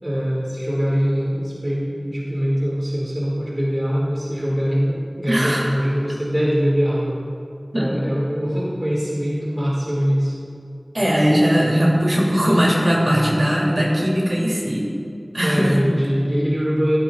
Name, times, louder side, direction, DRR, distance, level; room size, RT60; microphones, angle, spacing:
voice 1, 0.0-7.2 7.7-10.3 15.3-17.0, equal, 35° right, -6 dB, 2.2 m, -22 dB
voice 2, 5.3-5.7 7.7-7.9 10.9-14.9 15.3-15.9, equal, 65° right, -5 dB, 2.8 m, -19 dB
14.0 x 12.0 x 2.4 m, 2.5 s
wide cardioid pair, 40°, 0 cm